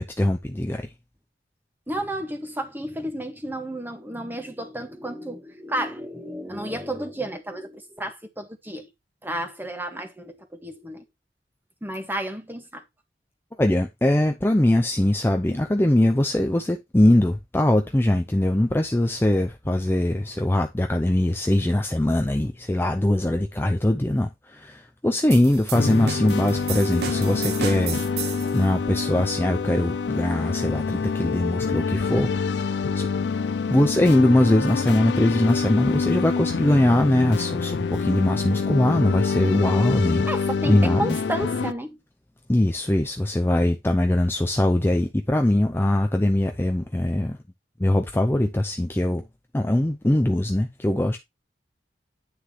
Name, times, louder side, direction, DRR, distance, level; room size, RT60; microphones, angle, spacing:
voice 1, 0.2-0.9 13.6-33.1 33.7-40.3 40.6-41.2 42.5-47.4 47.8-49.2 49.5-51.2, left 1 dB, 15° left, 0.5 m, -22 dB
voice 2, 1.9-8.9 9.2-11.0 11.8-12.8 40.2-42.0, right 1 dB, 10° right, 1.6 m, -32 dB
sound 1, 25.3-28.6, right 6 dB, 65° right, 1.3 m, -34 dB
sound 2, 25.7-41.7, left 5 dB, 80° left, 0.5 m, -26 dB
9.5 x 6.5 x 3.1 m
head